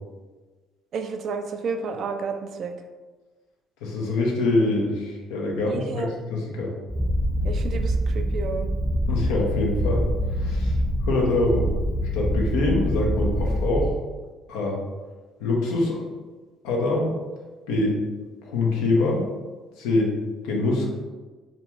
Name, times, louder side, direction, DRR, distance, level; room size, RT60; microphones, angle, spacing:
voice 1, 0.9-2.7 5.6-6.1 7.4-8.7, right 5 dB, 60° right, 5 dB, 0.3 m, -31 dB
voice 2, 3.8-6.7 9.1-10.8 11.0-11.7 12.1-13.9 14.5-14.8 15.4-16.0 16.6-17.1 17.7-18.0 18.4-19.3 19.8-20.1 20.4-20.9, left 2 dB, 75° left, -1 dB, 0.6 m, -24 dB
Purr, 6.9-13.9, equal, 10° left, 0.7 m, -25 dB
2.5 x 2.4 x 3.0 m, 1.3 s
hypercardioid pair, 55°, 0 cm